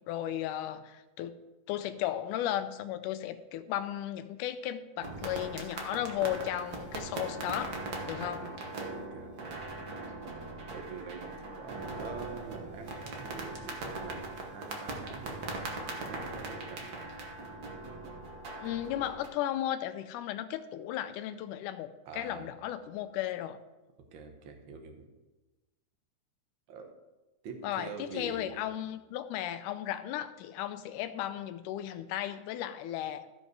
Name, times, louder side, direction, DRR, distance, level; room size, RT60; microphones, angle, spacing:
voice 1, 0.1-1.4 1.7-7.8 8.1-8.4 18.6-23.6 27.6-33.3, left 12 dB, 85° left, 11 dB, 2.1 m, -35 dB
sound 1, 5.0-19.3, right 2 dB, 75° right, 0.8 m, -40 dB
voice 2, 8.9-9.4 10.7-15.5 15.8-17.0 22.0-22.6 24.1-25.1 26.7-26.9 27.4-28.6, right 5 dB, 60° right, 5 dB, 1.3 m, -45 dB
14.5 x 5.4 x 4.7 m, 1.1 s
omnidirectional pair, 3.6 m